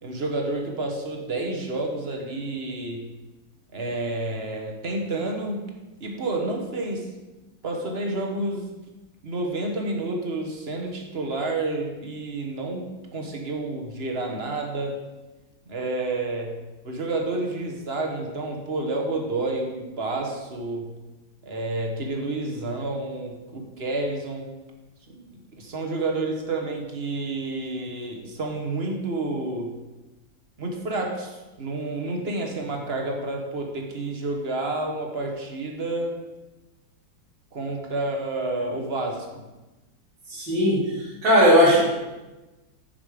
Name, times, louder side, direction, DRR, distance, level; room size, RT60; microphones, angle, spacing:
voice 1, 0.0-3.1 3.7-5.6 6.0-7.1 7.6-8.7 9.2-15.0 15.7-16.5 16.8-20.9 21.4-24.5 25.1-29.7 30.6-36.2 37.5-39.5, right 2 dB, 35° right, 1 dB, 1.4 m, -29 dB
voice 2, 40.3-41.9, equal, 80° right, -9 dB, 3.1 m, -18 dB
9.5 x 5.9 x 5.1 m, 1.1 s
omnidirectional pair, 2.1 m